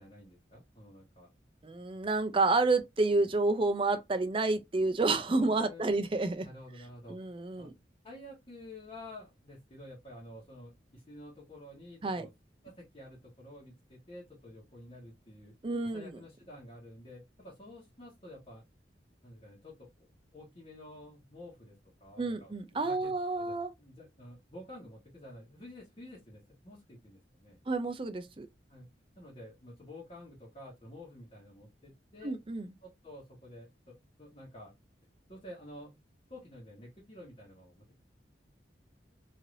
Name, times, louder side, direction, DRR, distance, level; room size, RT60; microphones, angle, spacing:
voice 1, 0.0-1.4 5.3-6.0 6.4-7.2 7.6-7.7 8.0-12.3 12.6-15.5 15.9-18.6 19.2-20.1 20.3-27.6 28.7-28.9 29.2-32.3 32.8-34.7 35.3-36.0 36.3-38.0, left 1 dB, 30° left, 1.3 m, -50 dB
voice 2, 1.6-6.5 7.1-7.7 12.0-12.3 15.6-16.1 22.2-23.7 27.7-28.5 32.2-32.7, right 3 dB, 30° right, 0.5 m, -29 dB
3.2 x 2.8 x 2.6 m
head